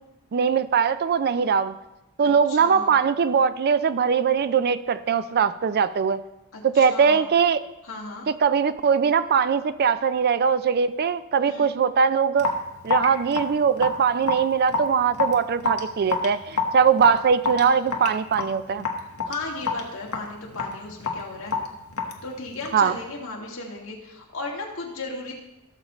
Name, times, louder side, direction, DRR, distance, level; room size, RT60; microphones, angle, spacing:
voice 1, 0.3-1.7 2.2-6.2 6.7-7.6 8.3-12.5 12.8-18.9 22.7-22.9, right 6 dB, 45° right, 14 dB, 0.4 m, -21 dB
voice 2, 2.5-3.0 6.5-7.4 7.8-8.3 11.4-11.8 19.3-21.5 22.2-25.3, left 2 dB, 65° left, -2 dB, 2.1 m, -35 dB
Raindrop / Drip, 12.4-22.9, left 4 dB, 80° left, 1.2 m, -29 dB
16.0 x 6.8 x 3.1 m, 0.95 s
head